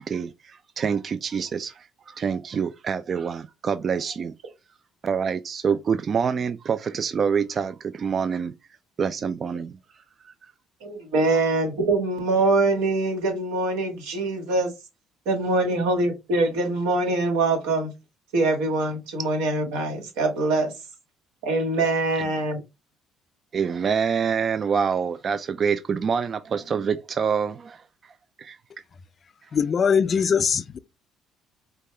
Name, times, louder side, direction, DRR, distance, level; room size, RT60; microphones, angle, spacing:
voice 1, 0.0-4.3 5.0-8.5 9.0-9.8 10.2-10.5 23.5-28.1 28.4-28.6, right 6 dB, 45° right, 0.3 m, -26 dB
voice 2, 10.8-14.7 15.2-17.9 18.3-20.7 21.4-22.6, right 2 dB, 90° right, 1.5 m, -23 dB
voice 3, 29.5-30.8, left 6 dB, 45° left, 0.4 m, -21 dB
5.2 x 2.3 x 3.2 m
supercardioid pair, 85°, 0 cm